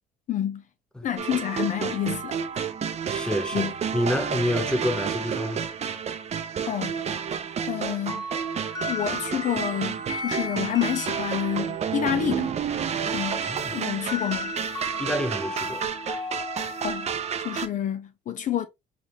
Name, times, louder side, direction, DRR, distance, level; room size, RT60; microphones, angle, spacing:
voice 1, 0.3-0.6 1.0-2.7 3.5-3.7 6.7-7.0 7.7-8.3 8.8-12.6 13.1-13.4 13.7-14.5 16.8-17.1 17.4-18.7, left 10 dB, 50° left, 0.5 m, -29 dB
sound 1, 1.2-17.7, right 7 dB, 40° right, 0.6 m, -30 dB
voice 2, 3.1-5.7 13.4-13.8 15.0-15.9, equal, 5° left, 0.6 m, -28 dB
sound 2, 8.1-11.8 13.4-17.2, left 2 dB, 20° left, 1.5 m, -36 dB
3.9 x 3.4 x 2.8 m
cardioid pair, 110°, 17 cm